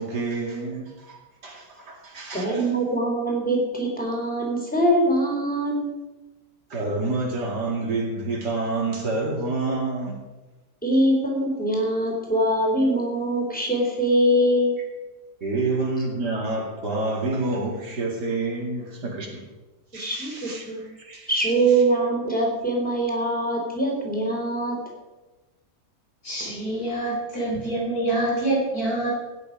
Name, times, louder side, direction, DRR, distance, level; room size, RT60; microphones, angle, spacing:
voice 1, 0.0-2.7 6.7-10.2 15.4-19.4 19.9-20.7 21.0-21.3, right 3 dB, 85° right, -1 dB, 3.2 m, -28 dB
voice 2, 2.3-5.9 10.8-14.8 19.9-20.8 21.3-24.8, right 1 dB, 5° left, -2 dB, 3.5 m, -23 dB
voice 3, 26.2-29.1, right 1 dB, 65° left, -5 dB, 4.8 m, -26 dB
16.0 x 9.8 x 5.3 m, 1.2 s
omnidirectional pair, 1.7 m